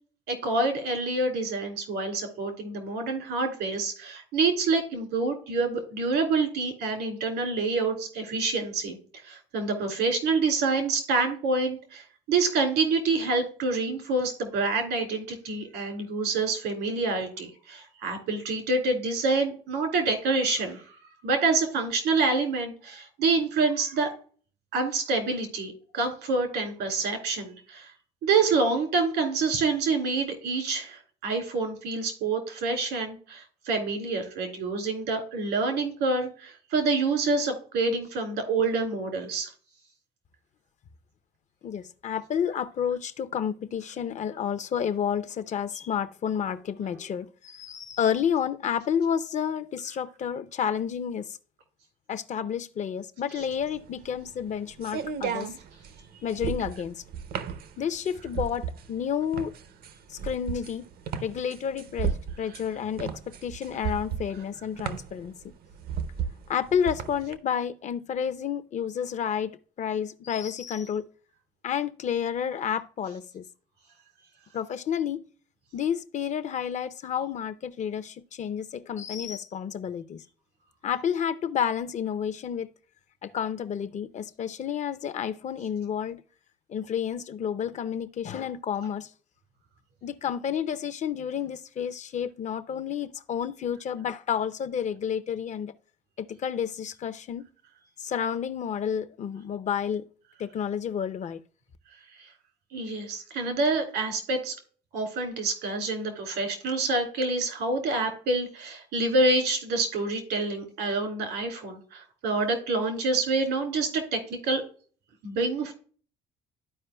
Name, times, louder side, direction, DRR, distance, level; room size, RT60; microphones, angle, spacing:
voice 1, 0.3-9.0 9.2-21.0 21.2-24.1 24.7-27.9 28.2-39.5 102.7-104.5 104.9-114.6 115.2-115.7, right 3 dB, 85° right, 2.4 m, -27 dB
voice 2, 41.6-51.4 52.1-55.5 56.2-57.0 57.8-59.6 60.1-60.9 61.2-65.5 66.5-71.1 71.6-73.5 74.5-75.3 75.7-80.2 80.8-82.7 83.2-86.2 86.7-89.1 90.0-95.7 96.2-97.5 98.0-100.1 100.4-101.4, left 8 dB, 45° left, 0.5 m, -30 dB
sound 1, 53.5-67.3, right 7 dB, 65° right, 0.7 m, -34 dB
13.0 x 4.7 x 2.2 m
cardioid pair, 110°, 17 cm